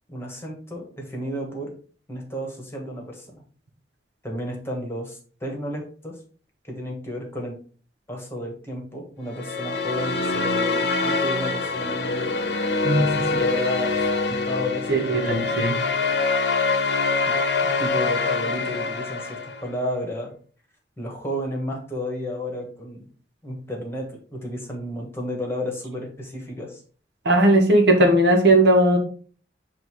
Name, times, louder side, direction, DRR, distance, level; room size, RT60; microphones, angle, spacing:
voice 1, 0.1-1.7 2.1-3.3 4.2-6.1 6.6-7.6 8.1-12.3 12.9-14.0 14.3-15.5 17.3-17.4 17.6-20.3 21.0-23.0 23.4-26.8, left 1 dB, 15° left, 0 dB, 1.6 m, -32 dB
sound 1, 9.3-19.7, left 3 dB, 65° left, 0.8 m, -25 dB
voice 2, 12.8-13.3 14.9-15.7 27.2-29.0, right 1 dB, 65° right, 3 dB, 1.3 m, -18 dB
7.8 x 2.8 x 4.6 m, 0.42 s
head